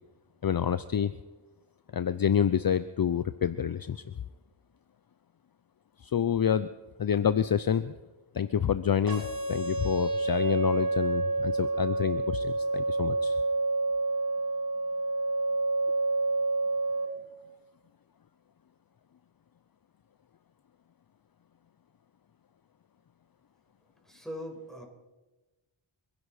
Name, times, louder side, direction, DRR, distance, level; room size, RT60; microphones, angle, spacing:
voice 1, 0.4-1.1 1.9-4.1 6.0-6.7 7.0-7.9 8.3-13.4, left 8 dB, 45° left, 14 dB, 0.6 m, -28 dB
sound 1, 9.1-17.1, right 2 dB, 45° right, 4.7 m, -29 dB
voice 2, 24.1-24.8, equal, ahead, 1 dB, 5.4 m, -40 dB
26.5 x 10.5 x 4.9 m, 1.2 s
cardioid pair, 40°, 50 cm